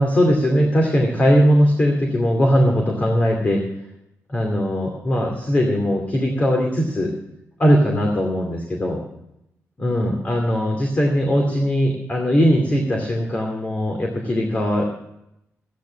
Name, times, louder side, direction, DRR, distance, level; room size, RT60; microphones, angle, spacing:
voice 1, 0.0-3.6 4.3-7.1 7.6-9.0 9.8-14.9, equal, 30° left, 1 dB, 2.5 m, -19 dB
14.0 x 10.0 x 6.3 m, 0.84 s
wide cardioid pair, 130°, 5 cm